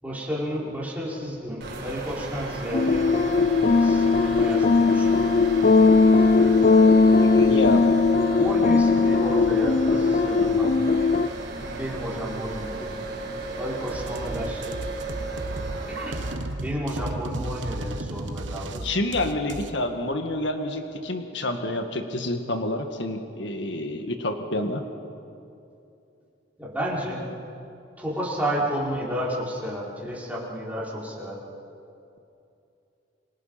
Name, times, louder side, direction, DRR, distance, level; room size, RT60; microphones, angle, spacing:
voice 1, 0.0-3.1 3.7-5.4 8.4-11.0 11.6-13.0 13.5-14.9 15.9-16.2 16.6-18.9 26.6-27.2 28.0-31.4, equal, 10° right, -6 dB, 5.6 m, -32 dB
sound 1, 1.6-16.3, right 2 dB, 60° right, 4.8 m, -35 dB
sound 2, 2.7-11.3, left 4 dB, 50° left, 0.6 m, -19 dB
voice 2, 7.2-8.0 18.8-24.8, left 1 dB, 70° left, 5 dB, 1.8 m, -28 dB
sound 3, 13.9-19.7, right 2 dB, 85° right, 1.2 m, -34 dB
28.0 x 25.0 x 5.9 m, 2.7 s
head